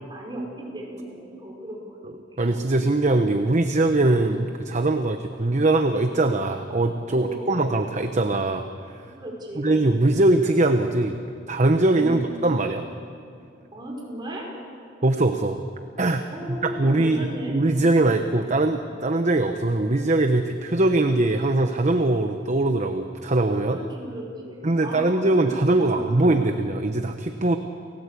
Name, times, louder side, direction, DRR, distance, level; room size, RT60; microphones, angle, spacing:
voice 1, 0.0-2.0 2.3-2.4 7.1-7.7 9.1-9.8 11.9-12.3 13.7-14.5 16.3-17.7 23.6-26.3, right 1 dB, 25° right, -1 dB, 5.3 m, -36 dB
voice 2, 2.4-8.7 9.6-11.2 11.5-12.8 15.0-15.6 16.0-16.3 16.6-23.8 24.6-27.6, right 2 dB, 40° right, 6 dB, 1.0 m, -21 dB
29.5 x 18.0 x 8.4 m, 2.5 s
head